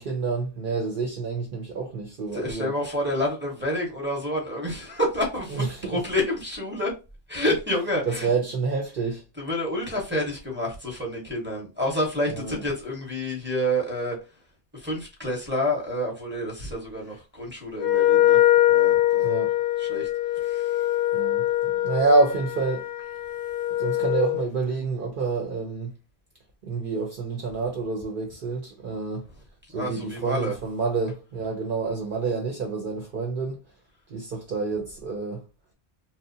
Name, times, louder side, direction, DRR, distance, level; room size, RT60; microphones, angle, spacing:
voice 1, 0.0-2.7 5.5-6.0 8.0-9.2 12.3-12.6 19.2-19.5 21.1-22.9 23.8-25.9 26.6-29.2 29.7-33.6 34.1-35.4, right 3 dB, 60° right, 0.7 m, -28 dB
voice 2, 2.3-6.9 7.3-8.3 9.4-14.2 14.7-18.4 18.7-19.3 19.8-20.1 20.4-20.9 29.7-30.6, equal, 10° right, 0.7 m, -28 dB
Wind instrument woodwind instrument, 17.8-24.5, left 13 dB, 75° left, 0.8 m, -23 dB
2.7 x 2.0 x 2.5 m
omnidirectional pair, 1.1 m